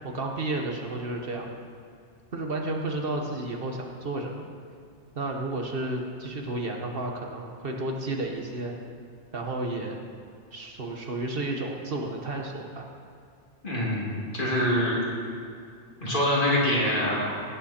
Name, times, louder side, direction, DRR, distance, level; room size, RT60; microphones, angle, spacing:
voice 1, 0.0-1.5 2.3-4.4 5.1-8.7 9.3-10.0 10.5-12.9, right 2 dB, 55° right, 2 dB, 1.2 m, -32 dB
voice 2, 13.6-15.0 16.0-17.4, left 1 dB, 45° left, -6 dB, 3.1 m, -25 dB
17.5 x 9.1 x 4.3 m, 2.3 s
omnidirectional pair, 1.2 m